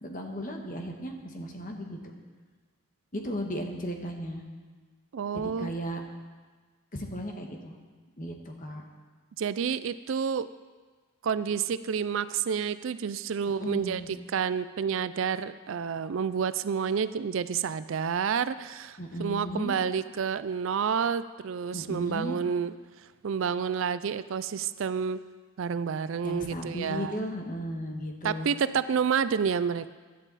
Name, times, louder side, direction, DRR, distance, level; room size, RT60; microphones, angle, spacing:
voice 1, 0.0-2.1 3.1-4.4 5.3-6.0 6.9-7.8 8.2-8.8 13.6-14.1 19.0-19.8 21.7-22.4 26.2-28.5, equal, 40° left, 3 dB, 1.4 m, -35 dB
voice 2, 5.1-5.7 9.4-10.5 11.2-14.0 14.3-22.7 23.2-25.2 25.6-27.2 28.2-29.9, right 7 dB, 65° right, 15 dB, 0.4 m, -29 dB
16.0 x 11.0 x 4.1 m, 1.4 s
head